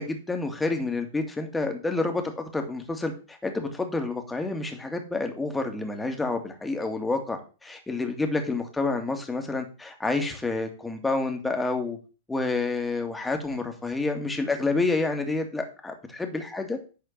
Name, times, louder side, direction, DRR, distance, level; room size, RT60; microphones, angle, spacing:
voice 1, 0.0-12.0 12.3-16.8, left 3 dB, 10° left, 4 dB, 2.0 m, -29 dB
10.5 x 4.3 x 7.4 m, 0.34 s
figure-of-eight pair, 100°, 0 cm